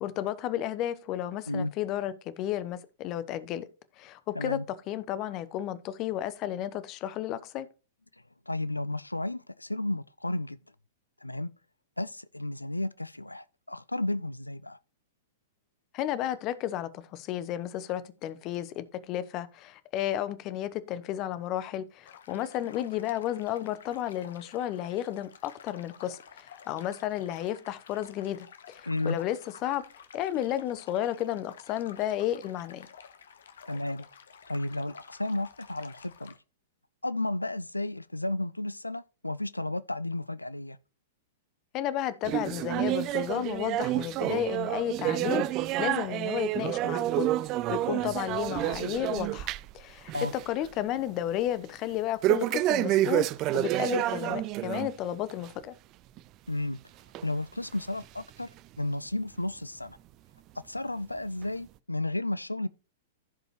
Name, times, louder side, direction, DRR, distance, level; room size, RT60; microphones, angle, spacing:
voice 1, 0.0-3.7 4.0-7.7 15.9-29.8 30.1-32.9 41.7-47.3 47.7-50.1 50.5-53.3 53.5-55.7, left 12 dB, 35° left, 0.9 m, -33 dB
voice 2, 4.3-4.7 8.5-10.6 11.2-11.5 12.0-14.8 28.9-29.2 33.7-34.1 34.5-36.3 37.0-40.8 50.1-50.3 56.5-56.8 57.2-58.5 58.8-60.0 60.6-62.7, left 2 dB, 85° left, 0.3 m, -33 dB
sound 1, 22.0-36.4, left 7 dB, 65° left, 1.2 m, -52 dB
sound 2, 42.2-49.8 50.1-50.4 50.8-50.9 52.2-54.9 55.3-55.5 56.2-56.3 57.1-57.2 58.0-58.1, right 15 dB, 35° right, 0.4 m, -29 dB
15.0 x 5.3 x 3.1 m
figure-of-eight pair, 100°, 0 cm